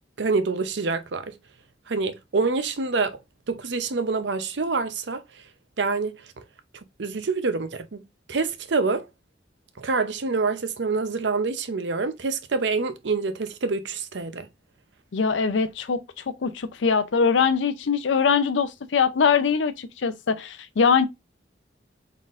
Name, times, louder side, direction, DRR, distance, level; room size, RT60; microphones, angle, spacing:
voice 1, 0.2-1.3 1.9-3.2 3.5-5.2 5.8-6.2 7.0-8.0 8.3-9.1 9.8-14.5, right 4 dB, 70° right, 0.6 m, -26 dB
voice 2, 15.1-21.1, left 6 dB, 80° left, 0.5 m, -22 dB
4.0 x 3.8 x 2.5 m
head